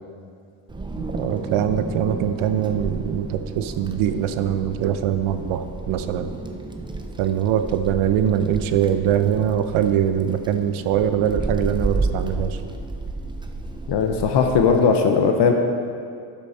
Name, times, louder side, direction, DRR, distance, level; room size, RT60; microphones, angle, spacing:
Wind, 0.7-14.9, right 2 dB, 10° right, 0.5 m, -32 dB
voice 1, 1.0-6.3 7.2-12.6, right 9 dB, 85° right, 9 dB, 0.8 m, -22 dB
voice 2, 13.9-15.5, left 5 dB, 55° left, 4 dB, 0.9 m, -18 dB
11.5 x 7.2 x 4.2 m, 2.4 s
cardioid pair, 120°, 48 cm